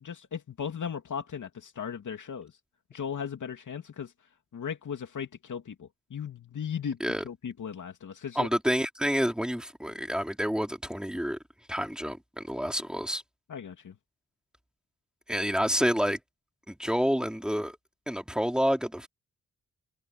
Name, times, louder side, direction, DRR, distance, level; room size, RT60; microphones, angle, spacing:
voice 1, 0.0-2.5 2.9-4.1 4.5-7.0 7.2-8.5 13.5-13.9, left 7 dB, 70° left, 2.8 m, -37 dB
voice 2, 8.4-11.4 11.7-13.2 15.3-16.2 16.7-17.8 18.1-19.1, equal, ahead, 3.9 m, -28 dB
cardioid pair, 95°, 31 cm